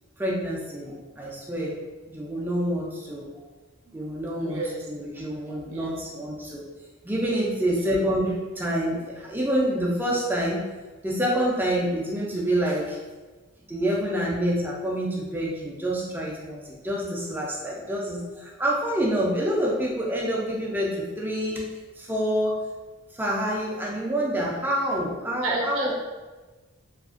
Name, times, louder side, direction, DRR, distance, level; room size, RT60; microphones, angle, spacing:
voice 1, 0.2-1.8 2.1-3.3 3.9-6.6 7.0-10.6 11.0-13.0 13.7-21.7 22.0-22.6 23.2-25.9, equal, 10° right, -4 dB, 0.4 m, -27 dB
voice 2, 4.4-4.8 5.6-6.0 25.4-25.9, right 3 dB, 70° right, -1 dB, 0.5 m, -31 dB
2.8 x 2.4 x 2.5 m, 1.3 s
head